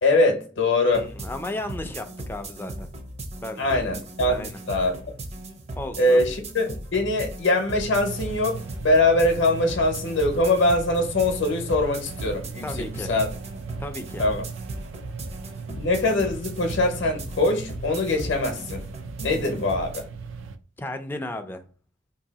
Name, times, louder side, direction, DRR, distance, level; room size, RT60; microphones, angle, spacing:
voice 1, 0.0-1.1 3.6-4.9 6.0-13.3 14.2-14.4 15.7-18.8 19.2-20.0, left 2 dB, 65° left, 0.7 m, -23 dB
voice 2, 0.8-2.9 3.4-3.9 4.2-4.6 5.8-6.2 12.6-13.1 13.8-14.2 20.8-21.6, left 1 dB, 10° left, 0.3 m, -34 dB
sound 1, 0.9-20.0, right 1 dB, 35° right, 0.6 m, -38 dB
sound 2, 7.7-20.6, right 5 dB, 80° right, 0.4 m, -39 dB
2.7 x 2.6 x 3.9 m
head